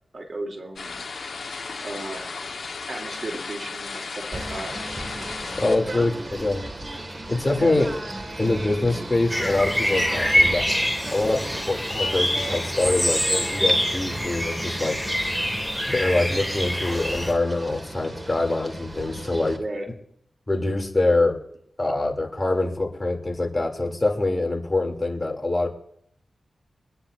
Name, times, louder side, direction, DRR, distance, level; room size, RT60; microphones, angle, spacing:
voice 1, 0.1-1.0 1.8-2.4 2.9-4.7 5.9-6.1 7.6-7.8 19.5-19.9, right 2 dB, 55° right, 1 dB, 3.2 m, -35 dB
sound 1, 0.8-5.8, left 4 dB, 70° left, 1.3 m, -35 dB
Singing / Bird, 4.3-19.6, right 1 dB, 35° right, 2.0 m, -36 dB
voice 2, 5.6-6.6 7.3-7.9 8.4-10.7 11.1-15.0 15.9-19.6 20.5-21.4 21.8-25.7, left 2 dB, 30° left, 1 dB, 3.0 m, -24 dB
sound 2, 9.3-17.3, equal, 5° right, 3.0 m, -25 dB
24.0 x 9.9 x 2.7 m, 0.69 s
cardioid pair, 45°, 0 cm